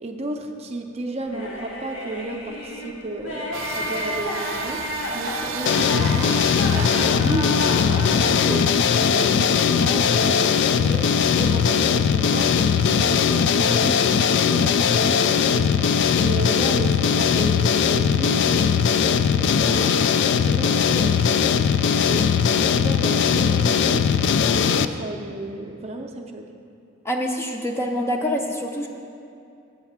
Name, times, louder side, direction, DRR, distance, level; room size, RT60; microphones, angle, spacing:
voice 1, 0.0-4.8 5.1-6.4 6.7-11.1 11.3-14.0 14.4-15.8 16.2-20.1 20.4-21.6 22.0-24.1 24.6-26.5, right 2 dB, 30° right, 3 dB, 0.5 m, -33 dB
sound 1, 1.2-8.8, left 1 dB, 80° left, 1.5 m, -31 dB
sound 2, 3.5-12.5, right 4 dB, 90° right, 0.5 m, -37 dB
sound 3, 5.7-24.9, left 7 dB, 60° left, 0.3 m, -19 dB
voice 2, 27.0-28.9, equal, 15° left, 2 dB, 0.5 m, -26 dB
8.0 x 5.8 x 7.3 m, 2.5 s
head